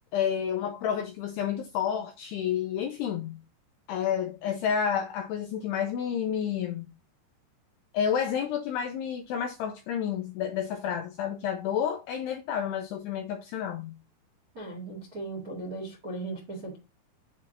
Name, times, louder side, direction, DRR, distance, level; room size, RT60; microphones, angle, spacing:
voice 1, 0.1-3.4 3.9-6.9 7.9-13.9, left 8 dB, 90° left, 2.3 m, -30 dB
voice 2, 14.5-16.8, right 2 dB, 70° right, 0.8 m, -37 dB
7.3 x 2.9 x 4.9 m
omnidirectional pair, 5.3 m